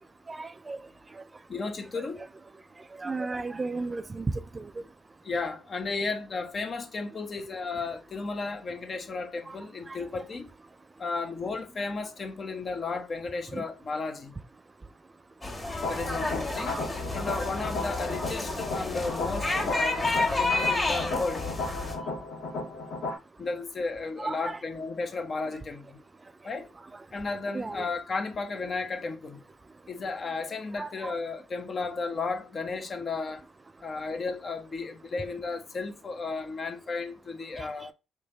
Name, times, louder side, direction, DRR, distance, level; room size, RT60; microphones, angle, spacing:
voice 1, 0.3-0.8 3.0-4.3 4.5-4.7 9.5-9.6 9.9-10.0 13.5-13.6 16.5-16.9 24.2-24.6 27.5-27.8 30.8-31.1, right 3 dB, 25° right, 0.3 m, -35 dB
voice 2, 1.5-2.2 5.2-10.5 11.0-14.3 15.9-16.8 17.1-21.5 23.4-26.0 26.4-26.7 27.1-29.4 29.9-33.4 33.8-37.9, left 3 dB, 45° left, 1.1 m, -34 dB
sound 1, 15.4-21.9, left 2 dB, 15° left, 1.6 m, -30 dB
sound 2, 15.8-23.1, left 3 dB, 85° left, 1.9 m, -35 dB
4.5 x 3.5 x 3.2 m
cardioid pair, 90°, 0 cm